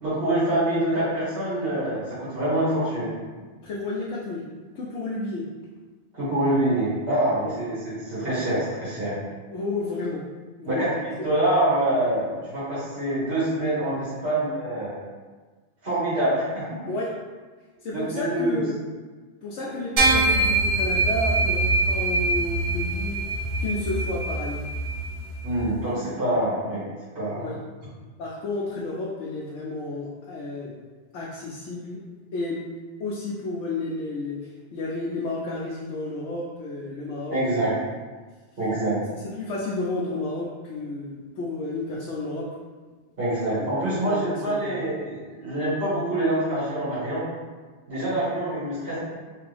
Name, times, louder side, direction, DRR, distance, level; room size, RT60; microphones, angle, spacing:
voice 1, 0.0-3.1 6.1-9.1 10.7-14.9 15.8-16.7 17.9-18.6 25.4-26.8 27.2-27.5 37.3-37.7 38.6-39.0 43.2-47.2 47.9-49.0, right 1 dB, 55° right, -10 dB, 1.7 m, -25 dB
voice 2, 3.6-4.4 4.7-5.4 7.4-7.5 9.5-10.2 10.6-10.9 11.2-11.3 16.9-17.1 17.8-18.7 19.4-23.2 23.6-24.6 27.4-27.6 28.2-30.8 31.1-32.0 32.3-32.6 33.0-37.7 39.2-42.5 43.7-44.9, left 2 dB, 90° left, -5 dB, 1.0 m, -31 dB
sound 1, 20.0-25.6, right 2 dB, 85° right, 1.5 m, -24 dB
3.4 x 3.4 x 3.3 m, 1.4 s
omnidirectional pair, 1.2 m